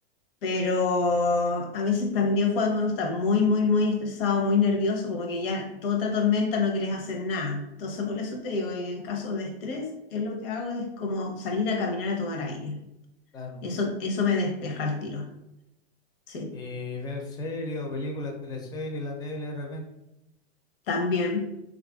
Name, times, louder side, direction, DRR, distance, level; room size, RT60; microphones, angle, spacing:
voice 1, 0.4-12.8 13.6-15.3 16.3-16.5 20.9-21.5, left 4 dB, 60° left, 3 dB, 0.8 m, -27 dB
voice 2, 16.5-19.8, left 2 dB, 10° left, 2 dB, 0.4 m, -34 dB
3.4 x 2.4 x 2.3 m, 0.88 s
hypercardioid pair, 115°, 33 cm